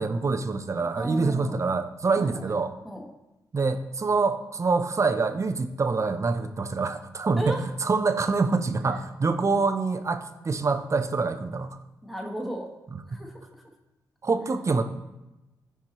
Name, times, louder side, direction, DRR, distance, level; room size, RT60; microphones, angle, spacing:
voice 1, 0.0-2.7 3.5-11.8 13.1-13.2 14.2-14.8, right 4 dB, 40° right, 9 dB, 0.7 m, -26 dB
voice 2, 1.0-1.6 2.2-2.5 2.8-3.1 7.4-7.6 12.0-12.7 13.1-13.6, equal, ahead, 0 dB, 1.4 m, -35 dB
13.5 x 4.6 x 3.0 m, 0.98 s
cardioid pair, 60°, 8 cm